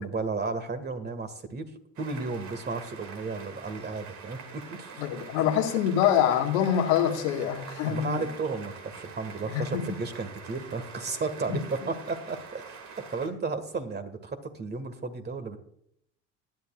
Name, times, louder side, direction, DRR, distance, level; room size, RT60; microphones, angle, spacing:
voice 1, 0.0-1.7 2.0-5.0 5.4-5.6 7.9-12.7 13.1-15.6, right 4 dB, 30° right, 9 dB, 1.9 m, -33 dB
sound 1, 2.0-13.3, right 5 dB, 55° right, 2.4 m, -45 dB
voice 2, 5.0-8.3 9.5-10.0 11.5-11.9, left 9 dB, 85° left, 2 dB, 1.8 m, -25 dB
19.0 x 10.5 x 2.5 m, 0.70 s
supercardioid pair, 85°, 33 cm